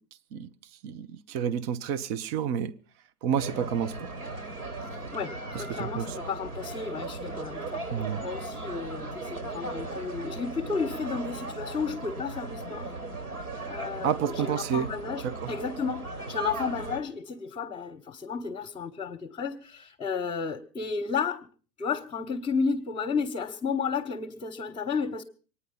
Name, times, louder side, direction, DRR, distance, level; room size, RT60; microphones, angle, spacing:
voice 1, 0.8-2.7 3.2-4.1 5.5-6.2 7.9-8.2 14.0-14.9 15.2-15.5, right 8 dB, 40° right, 1.0 m, -30 dB
sound 1, 3.3-17.0, right 2 dB, 75° right, 5.1 m, -37 dB
voice 2, 5.1-12.9 13.7-21.5 21.8-25.2, left 5 dB, 15° left, 1.4 m, -32 dB
24.5 x 9.9 x 5.6 m
figure-of-eight pair, 105°, 45 cm